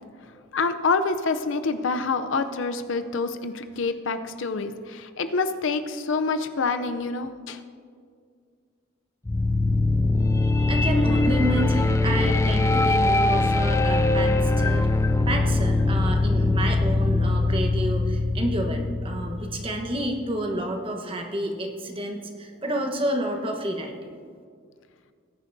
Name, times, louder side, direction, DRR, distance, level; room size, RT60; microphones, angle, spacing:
voice 1, 0.5-7.6, left 4 dB, 70° left, 9 dB, 0.5 m, -27 dB
sound 1, 9.3-20.2, left 2 dB, 15° left, 0.3 m, -22 dB
voice 2, 10.4-14.9 15.3-24.2, right 1 dB, 25° right, 3 dB, 1.1 m, -29 dB
19.5 x 10.0 x 2.7 m, 2.1 s
head